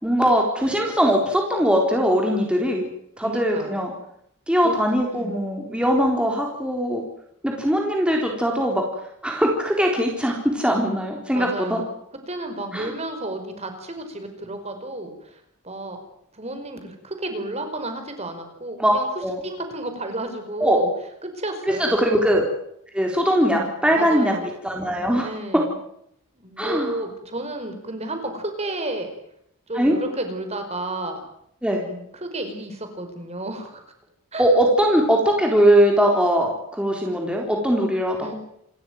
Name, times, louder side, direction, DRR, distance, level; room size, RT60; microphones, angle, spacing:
voice 1, 0.0-2.9 3.2-3.9 4.5-7.0 7.4-8.8 9.2-11.8 12.7-12.9 18.8-19.4 20.6-20.8 21.8-22.4 22.9-24.3 24.6-25.6 26.6-27.0 29.7-30.0 31.6-31.8 34.4-38.3, equal, 5° right, 0 dB, 3.9 m, -21 dB
voice 2, 3.2-3.8 4.6-4.8 5.1-5.4 11.3-11.9 12.3-16.0 16.3-19.1 19.4-20.9 21.2-22.0 23.9-24.5 25.2-25.7 26.4-29.1 29.7-31.2 31.9-33.8 34.3-34.5 38.2-38.3, right 2 dB, 30° right, 6 dB, 5.0 m, -32 dB
28.5 x 14.5 x 9.4 m, 0.74 s
head